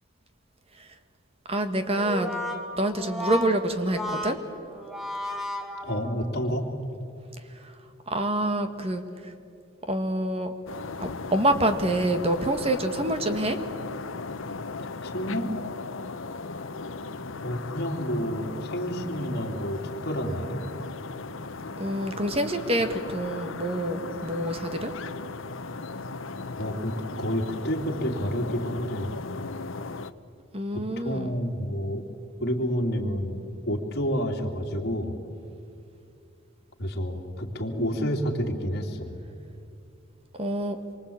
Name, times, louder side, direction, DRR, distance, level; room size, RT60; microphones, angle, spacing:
voice 1, 1.5-2.3 2.8-4.4 7.6-7.7 8.1-9.3 9.9-10.5 11.0-13.6 21.8-24.9 30.5-31.3 40.4-40.8, right 1 dB, 30° right, 8 dB, 1.7 m, -27 dB
Brass instrument, 2.0-6.5, left 1 dB, ahead, 2.1 m, -34 dB
voice 2, 5.8-6.7 14.8-15.5 17.4-20.6 26.6-29.1 30.7-32.0 32.4-35.2 36.8-39.1, equal, 50° left, 1 dB, 3.0 m, -29 dB
sound 1, 10.7-30.1, left 3 dB, 70° left, 0.9 m, -37 dB
27.0 x 24.0 x 8.7 m, 2.6 s
head